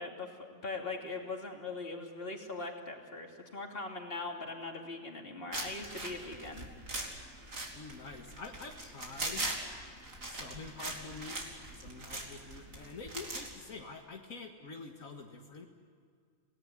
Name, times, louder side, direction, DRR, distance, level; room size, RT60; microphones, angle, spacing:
voice 1, 0.0-6.6, left 3 dB, 45° left, 2 dB, 2.9 m, -41 dB
sound 1, 5.5-13.5, right 2 dB, 75° right, 3.7 m, -41 dB
voice 2, 7.8-9.5 10.3-15.7, left 4 dB, 80° left, 2 dB, 2.1 m, -46 dB
28.0 x 18.5 x 9.8 m, 2.1 s
omnidirectional pair, 1.4 m